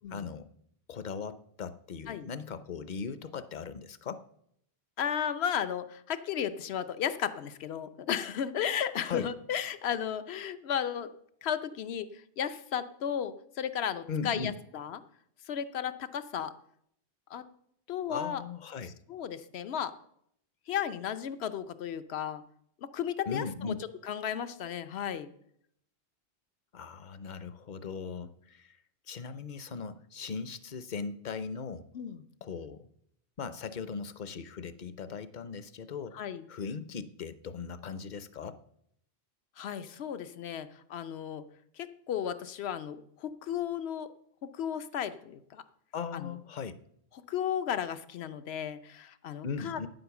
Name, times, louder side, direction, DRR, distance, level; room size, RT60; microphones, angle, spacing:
voice 1, 0.1-0.5 0.9-4.2 9.1-9.3 14.1-14.6 18.1-18.9 23.3-23.8 26.7-28.8 29.1-31.9 32.4-32.9 33.4-36.2 36.5-38.6 45.9-46.8 49.4-49.9, left 5 dB, 50° left, 13 dB, 0.7 m, -38 dB
voice 2, 5.0-11.1 11.4-12.1 12.4-15.0 15.5-16.5 17.3-17.4 17.9-18.4 19.1-19.9 20.7-22.4 22.8-23.8 24.0-25.3 31.9-32.2 36.1-36.4 39.6-41.5 41.8-44.1 44.4-45.6 46.1-46.3 47.3-49.9, left 9 dB, 75° left, 12 dB, 1.0 m, -34 dB
9.4 x 9.4 x 7.0 m, 0.71 s
omnidirectional pair, 1.1 m